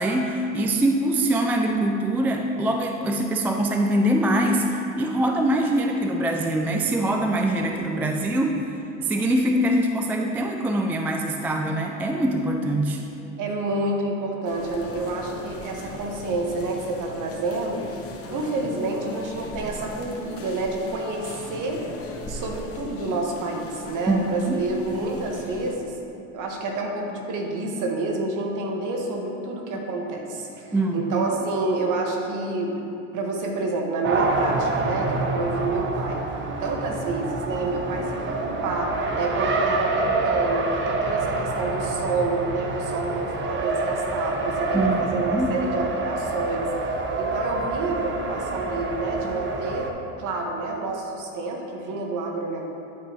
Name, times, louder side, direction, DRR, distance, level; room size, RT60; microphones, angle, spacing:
voice 1, 0.0-13.0 24.1-24.6 30.7-31.0 44.7-45.5, right 1 dB, 5° right, 3 dB, 0.3 m, -23 dB
voice 2, 13.4-17.9 18.3-21.8 22.3-25.9 26.3-32.7 33.1-36.2 36.6-46.7 47.2-49.9 50.2-52.7, right 2 dB, 50° right, 1 dB, 1.5 m, -28 dB
sound 1, 14.4-25.7, left 2 dB, 35° left, 1.1 m, -39 dB
Race car auto racing, 34.0-49.9, right 3 dB, 30° right, 0.9 m, -27 dB
11.5 x 5.4 x 3.0 m, 2.7 s
hypercardioid pair, 80°, 41 cm